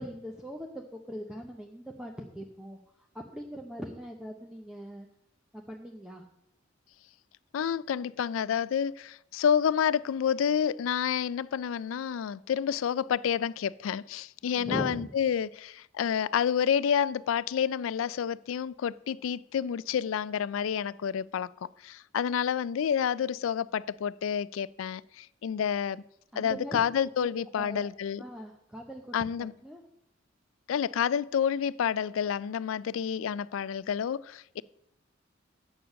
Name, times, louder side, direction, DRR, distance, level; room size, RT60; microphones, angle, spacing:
voice 1, 0.0-2.8 3.1-5.1 5.5-6.2 14.4-15.1 26.3-26.8 27.2-27.3 27.6-27.9 28.2-29.8, equal, 5° right, 0.7 m, -40 dB
voice 2, 7.5-26.0 26.4-28.2 29.1-29.5 30.7-34.6, left 8 dB, 85° left, 0.3 m, -29 dB
8.8 x 6.9 x 6.4 m
head